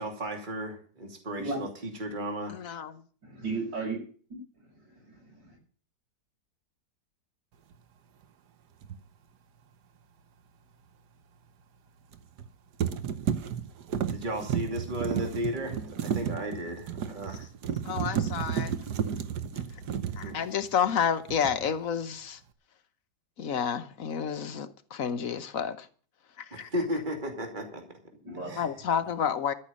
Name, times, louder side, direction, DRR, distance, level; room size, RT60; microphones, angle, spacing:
voice 1, 0.0-2.6 14.1-17.5 20.2-20.4 26.5-28.0 28.5-28.7, equal, 25° right, 2.7 m, -34 dB
voice 2, 2.5-2.9 17.8-18.7 20.2-22.4 23.4-25.9 26.4-26.7 28.6-29.5, left 7 dB, 55° left, 1.2 m, -30 dB
voice 3, 3.2-4.0 4.6-5.5 28.2-28.5, right 3 dB, 90° right, 6.8 m, -35 dB
sound 1, 8.8-9.0 12.1-12.5 12.8-21.0 21.3-21.7, right 8 dB, 70° right, 1.5 m, -32 dB
13.0 x 6.7 x 8.6 m
omnidirectional pair, 1.9 m